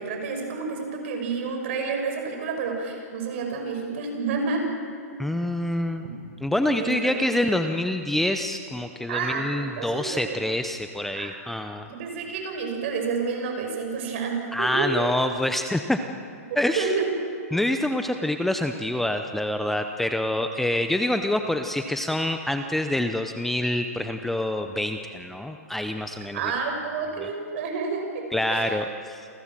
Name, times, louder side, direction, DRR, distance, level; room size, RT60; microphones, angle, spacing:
voice 1, 0.0-4.7 6.0-6.1 6.8-7.2 9.1-10.4 11.1-11.3 11.9-15.1 16.8-17.1 26.3-28.8, right 4 dB, 50° right, 3 dB, 6.0 m, -29 dB
voice 2, 5.2-6.0 6.4-11.9 14.5-16.0 16.6-16.9 17.5-26.4 27.2-27.3 28.3-29.3, left 1 dB, 5° left, 6 dB, 0.7 m, -26 dB
28.0 x 16.5 x 7.5 m, 2.4 s
hypercardioid pair, 150°, 9 cm